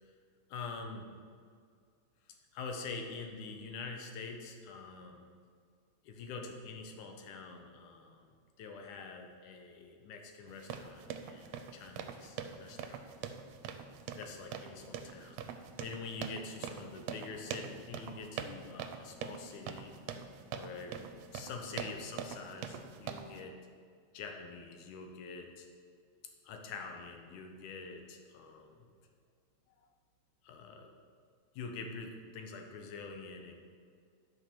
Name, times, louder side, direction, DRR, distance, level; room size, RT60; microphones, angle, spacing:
voice 1, 0.5-1.1 2.3-5.3 6.0-8.3 8.6-13.1 14.1-15.4 15.8-20.0 20.5-21.0 21.3-23.6 24.1-25.7 26.4-28.9 29.8-29.9 30.4-30.9 31.6-33.6, left 4 dB, 85° left, 3 dB, 2.4 m, -45 dB
sound 1, 10.5-23.4, right 7 dB, 75° right, 1.6 m, -43 dB
11.5 x 4.7 x 6.8 m, 2.1 s
omnidirectional pair, 3.4 m